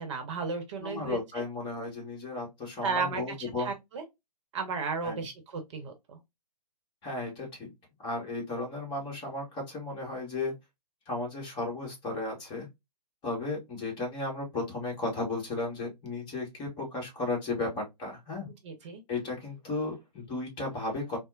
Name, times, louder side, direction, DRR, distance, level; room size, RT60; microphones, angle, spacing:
voice 1, 0.0-1.2 2.8-4.0 4.5-6.2 18.6-19.0, right 5 dB, 45° right, 0.9 m, -34 dB
voice 2, 0.8-3.7 5.0-5.3 7.0-7.7 8.0-10.5 11.1-12.7 13.2-18.5 19.1-21.2, left 2 dB, 20° left, 1.4 m, -34 dB
4.0 x 2.1 x 2.4 m
hypercardioid pair, 135°, 21 cm